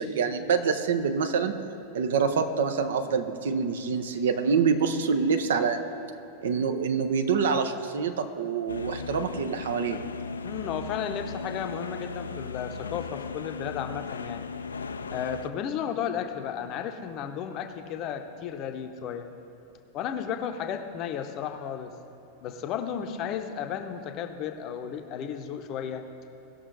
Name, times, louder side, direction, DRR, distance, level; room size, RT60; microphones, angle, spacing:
voice 1, 0.0-1.5 1.9-5.8 6.4-10.0, right 5 dB, 60° right, 8 dB, 0.7 m, -26 dB
sound 1, 8.7-15.5, left 4 dB, 75° left, 0.4 m, -37 dB
voice 2, 10.4-14.4 15.1-19.3 19.9-21.9 22.4-26.1, left 8 dB, 40° left, 7 dB, 0.7 m, -33 dB
17.5 x 6.3 x 3.9 m, 2.9 s
figure-of-eight pair, 90°, 0 cm